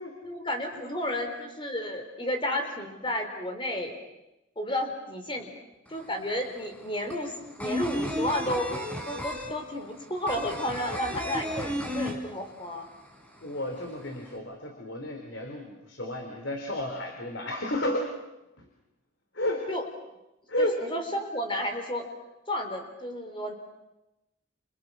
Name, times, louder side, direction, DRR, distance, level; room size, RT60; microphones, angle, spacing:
voice 1, 0.2-3.9 4.6-5.5 5.9-8.8 9.1-12.9 14.2-14.3 19.7-19.9 20.6-22.0 22.5-23.5, left 1 dB, 25° left, 5 dB, 4.2 m, -32 dB
sound 1, 5.9-6.0 6.2-12.8 13.1-13.2 13.5-14.3, equal, 5° left, 4.0 m, -33 dB
voice 2, 13.4-18.1 19.3-19.7 20.5-20.8, left 1 dB, 60° left, 3 dB, 3.7 m, -32 dB
29.5 x 29.0 x 6.3 m, 0.93 s
head